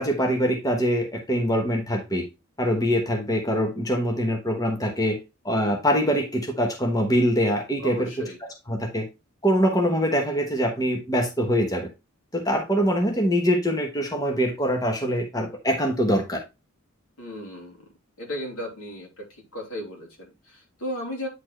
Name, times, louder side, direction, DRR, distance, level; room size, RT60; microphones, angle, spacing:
voice 1, 0.0-2.3 2.6-5.2 5.4-8.1 8.7-9.1 9.4-11.9 12.3-16.4, equal, 15° left, 3 dB, 1.1 m, -23 dB
voice 2, 7.8-8.4 17.2-17.9 18.2-21.3, equal, 80° left, -1 dB, 3.2 m, -35 dB
9.4 x 4.3 x 3.2 m, 0.25 s
head